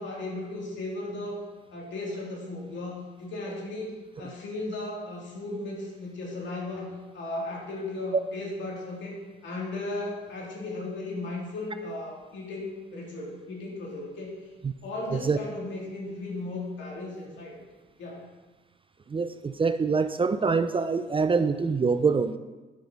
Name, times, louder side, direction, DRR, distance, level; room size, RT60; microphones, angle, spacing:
voice 1, 0.0-1.4 1.7-14.3 14.8-17.6 18.0-18.2, left 2 dB, 70° left, -2 dB, 3.0 m, -36 dB
voice 2, 19.1-22.4, right 4 dB, 25° right, 10 dB, 0.5 m, -25 dB
10.0 x 6.1 x 5.2 m, 1.2 s
cardioid pair, 90°, 20 cm